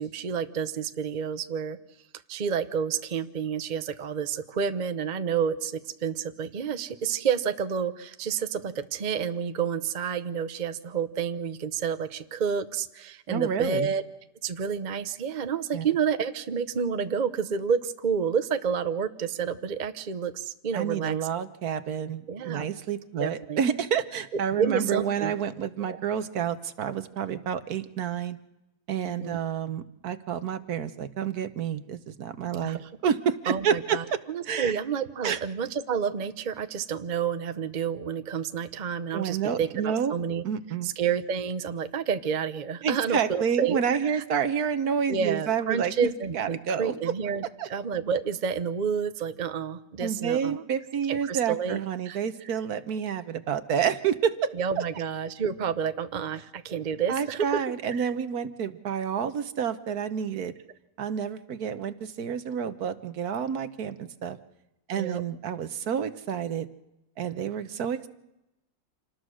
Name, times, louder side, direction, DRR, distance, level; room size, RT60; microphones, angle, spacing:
voice 1, 0.0-1.8 2.3-14.0 14.4-21.4 22.3-22.7 23.2-23.6 24.6-25.3 25.9-26.0 29.2-29.4 32.6-32.9 33.5-40.4 40.8-43.8 44.1-44.2 45.1-50.6 51.1-51.8 52.1-52.2 54.6-57.6 57.9-58.1 64.9-65.2, right 7 dB, 40° right, 10 dB, 0.6 m, -29 dB
voice 2, 13.3-13.9 15.7-15.8 20.7-28.4 28.9-34.2 34.4-34.8 35.2-35.4 39.1-40.1 40.4-40.9 42.8-45.9 46.3-46.9 47.6-47.7 50.0-54.5 54.8-54.9 57.1-60.6 61.0-64.4 64.9-66.7 67.2-68.1, right 7 dB, 65° right, 11 dB, 1.4 m, -29 dB
27.0 x 19.0 x 6.3 m, 0.92 s
omnidirectional pair, 1.8 m